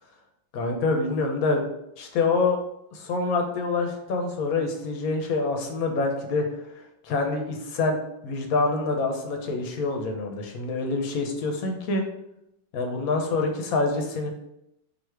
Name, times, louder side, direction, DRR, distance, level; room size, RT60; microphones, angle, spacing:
voice 1, 0.5-1.6 2.0-2.6 2.9-6.5 7.0-8.0 8.2-12.0 12.7-14.3, left 3 dB, 60° left, 3 dB, 1.0 m, -26 dB
4.0 x 2.8 x 4.6 m, 0.82 s
omnidirectional pair, 2.2 m